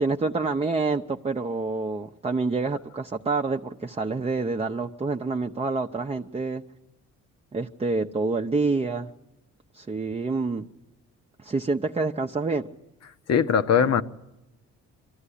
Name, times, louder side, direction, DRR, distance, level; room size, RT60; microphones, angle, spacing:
voice 1, 0.0-6.6 7.5-9.1 9.7-10.7 11.4-12.7 13.8-14.0, right 3 dB, 20° right, 4 dB, 0.7 m, -27 dB
voice 2, 13.3-14.0, left 7 dB, 60° left, 11 dB, 1.0 m, -20 dB
23.0 x 14.5 x 10.0 m, 0.96 s
cardioid pair, 90°, 30 cm